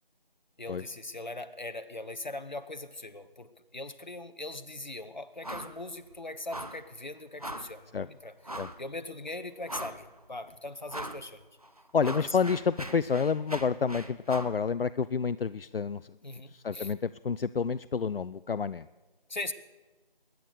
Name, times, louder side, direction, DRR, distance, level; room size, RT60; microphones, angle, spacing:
voice 1, 0.6-11.4 12.0-12.3 16.2-16.9 19.3-19.5, left 2 dB, 50° left, 10 dB, 0.9 m, -40 dB
sound 1, 5.4-5.8 6.0-6.2 6.5-6.9 7.4-7.8 8.4-8.8 9.3-9.4 9.7-10.2 10.9-11.2 11.6-14.6, right 1 dB, 40° right, 0.8 m, -40 dB
voice 2, 11.9-16.0 16.5-18.9, left 5 dB, 75° left, 14 dB, 0.4 m, -29 dB
21.5 x 9.4 x 6.8 m, 1.2 s
figure-of-eight pair, 170°, 29 cm